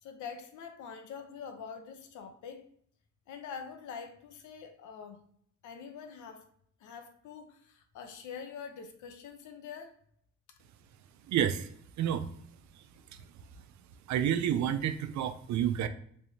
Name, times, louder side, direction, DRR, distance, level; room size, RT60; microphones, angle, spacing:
voice 1, 0.0-2.7 3.3-5.2 5.6-6.5 6.8-9.9, left 6 dB, 75° left, 0.7 m, -45 dB
voice 2, 11.3-11.7 12.0-12.3 14.1-15.9, right 9 dB, 70° right, 0.5 m, -29 dB
3.4 x 3.3 x 2.7 m
cardioid pair, 90°, 30 cm